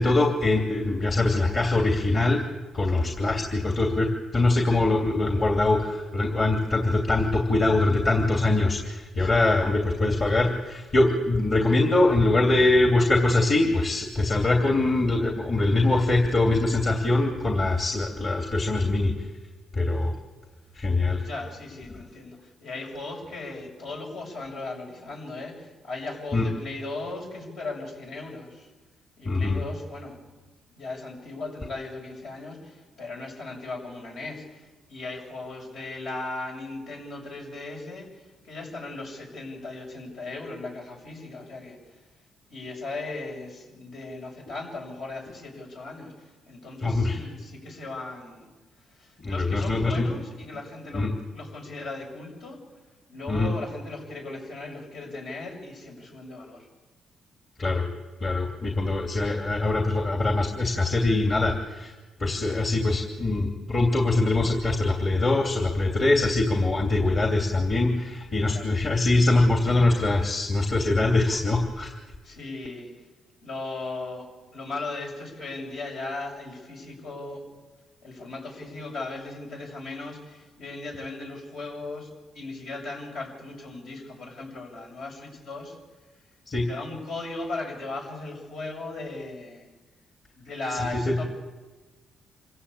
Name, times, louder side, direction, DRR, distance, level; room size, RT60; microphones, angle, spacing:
voice 1, 0.0-2.4 2.7-4.1 4.3-19.1 19.7-20.1 20.8-21.2 26.3-26.4 29.3-29.6 46.8-47.2 49.2-50.1 50.9-51.1 53.3-53.5 57.6-57.8 58.2-61.9 62.2-71.9 86.5-86.7 91.1-91.2, left 2 dB, 40° left, 2 dB, 2.9 m, -23 dB
voice 2, 9.2-9.5 21.2-28.7 29.2-30.2 30.8-41.8 42.5-48.5 49.0-51.1 51.3-52.6 53.1-56.7 68.5-68.8 72.2-72.9 73.4-74.3 74.5-77.4 78.0-82.1 82.3-85.8 86.7-89.7 90.4-91.2, left 2 dB, 70° left, 0 dB, 7.5 m, -37 dB
26.5 x 16.0 x 8.6 m, 1.3 s
cardioid pair, 90°, 0 cm